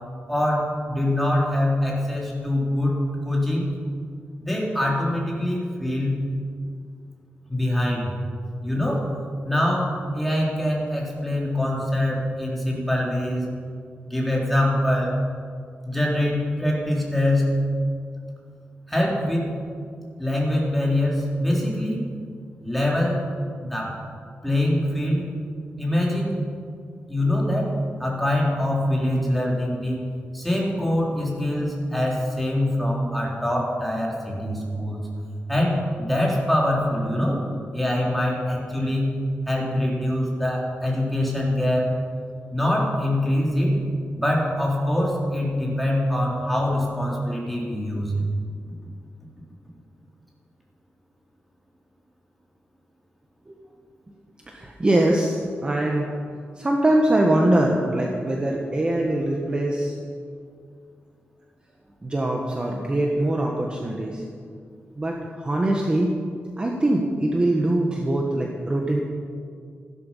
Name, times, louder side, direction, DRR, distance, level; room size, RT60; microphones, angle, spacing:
voice 1, 0.3-3.0 3.2-3.7 4.4-6.2 7.5-8.1 8.6-9.1 9.4-13.5 14.0-15.2 15.8-17.5 18.9-19.5 20.2-22.0 22.6-23.2 23.6-24.0 24.4-25.3 25.8-26.4 27.1-30.0 30.3-35.0 35.5-37.4 37.7-39.2 39.5-41.9 42.5-43.8 44.1-48.2, left 1 dB, ahead, -4 dB, 3.6 m, -24 dB
voice 2, 54.5-56.1 56.6-60.0 62.0-64.2 65.0-66.1 66.6-69.0, right 1 dB, 25° right, 0 dB, 1.4 m, -23 dB
15.5 x 12.5 x 5.7 m, 2.2 s
wide cardioid pair, 125°, 4 cm